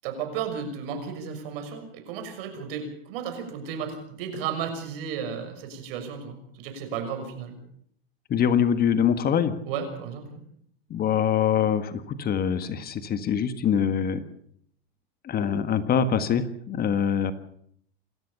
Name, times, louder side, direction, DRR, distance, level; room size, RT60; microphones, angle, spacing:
voice 1, 0.0-7.6 9.7-10.4, right 7 dB, 65° right, 7 dB, 6.3 m, -34 dB
voice 2, 8.3-9.5 10.9-14.2 15.2-17.3, left 8 dB, 30° left, 11 dB, 1.6 m, -24 dB
27.5 x 13.5 x 7.0 m, 0.66 s
hypercardioid pair, 105°, 31 cm